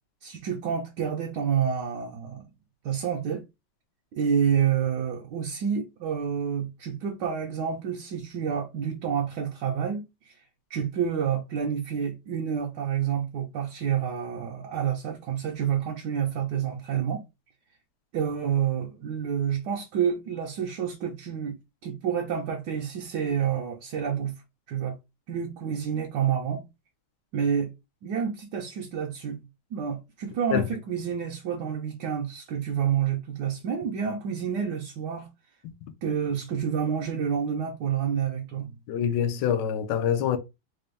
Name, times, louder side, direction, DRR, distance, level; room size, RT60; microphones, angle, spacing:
voice 1, 0.2-2.5 2.8-3.4 4.1-10.4 10.7-17.2 18.1-21.6 21.8-24.3 24.7-24.9 25.3-26.7 27.3-27.7 28.0-29.5 29.7-35.3 36.0-38.7, right 8 dB, 70° right, 1.1 m, -28 dB
voice 2, 38.9-40.4, left 9 dB, 70° left, 1.1 m, -25 dB
4.1 x 2.2 x 3.3 m
omnidirectional pair, 2.3 m